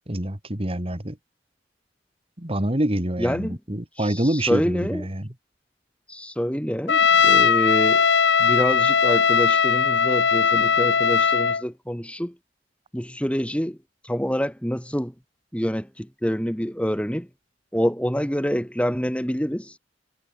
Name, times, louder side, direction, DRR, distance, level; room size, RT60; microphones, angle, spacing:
voice 1, 0.1-1.2 2.4-5.3, right 1 dB, 30° right, 2.5 m, -26 dB
voice 2, 3.2-5.1 6.1-8.1 8.4-12.4 12.9-13.8 14.0-15.1 15.5-17.3 17.7-19.8, equal, 5° left, 4.3 m, -27 dB
Trumpet, 6.9-11.6, left 6 dB, 75° left, 1.0 m, -19 dB
head